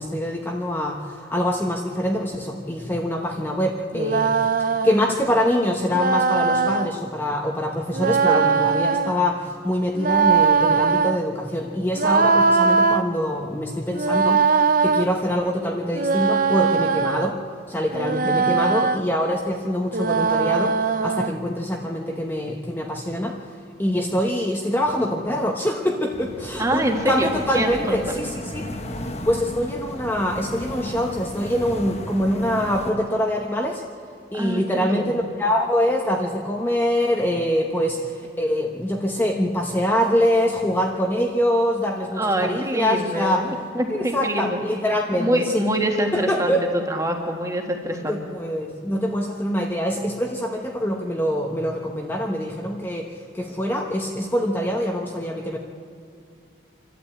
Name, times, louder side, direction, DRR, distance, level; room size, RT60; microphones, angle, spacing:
voice 1, 0.0-14.5 14.8-17.4 17.7-23.4 23.8-28.7 29.2-33.8 34.3-43.4 43.9-45.6 46.1-46.6 47.9-53.1 53.3-55.6, equal, 10° left, 0 dB, 1.1 m, -24 dB
sound 1, 3.9-5.0 5.9-6.9 7.9-9.2 9.9-11.2 12.0-13.0 13.9-15.1 15.9-17.3 17.9-19.0 19.9-21.3, right 5 dB, 45° right, 0.6 m, -20 dB
sound 2, 26.1-32.9, left 1 dB, 35° left, 1.3 m, -35 dB
voice 2, 26.6-28.0 34.3-35.3 42.2-44.6 45.2-46.5 46.9-48.2, right 1 dB, 15° right, 3 dB, 1.8 m, -25 dB
26.5 x 12.0 x 8.6 m, 2.4 s
head